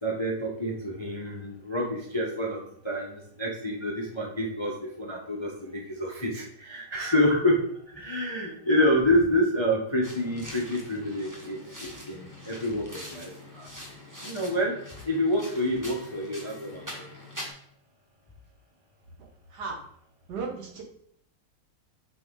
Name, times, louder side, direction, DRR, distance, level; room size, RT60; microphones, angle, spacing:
voice 1, 0.0-7.6 7.9-13.7 14.2-14.7 15.0-17.1, equal, 30° left, -1 dB, 0.5 m, -28 dB
sound 1, 10.0-17.5, left 1 dB, 15° right, 0.9 m, -43 dB
voice 2, 20.3-20.8, right 4 dB, 55° right, 1 dB, 1.8 m, -34 dB
6.6 x 5.5 x 3.8 m, 0.67 s
omnidirectional pair, 2.2 m